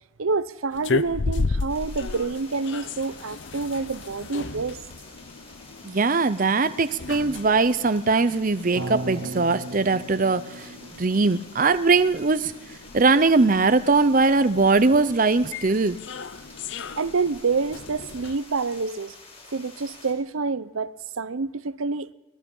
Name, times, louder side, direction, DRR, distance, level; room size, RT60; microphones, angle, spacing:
voice 1, 0.2-4.8 17.0-19.1 19.5-22.1, right 4 dB, 80° right, 0.7 m, -27 dB
sound 1, 0.7-18.4, left 4 dB, 60° left, 0.7 m, -35 dB
sound 2, 1.7-20.1, left 3 dB, 30° left, 6.7 m, -48 dB
voice 2, 5.8-10.6 11.0-12.5 12.9-16.0, right 3 dB, 40° right, 0.6 m, -20 dB
sound 3, 8.7-12.9, right 2 dB, 55° right, 1.2 m, -37 dB
23.5 x 20.5 x 5.5 m
head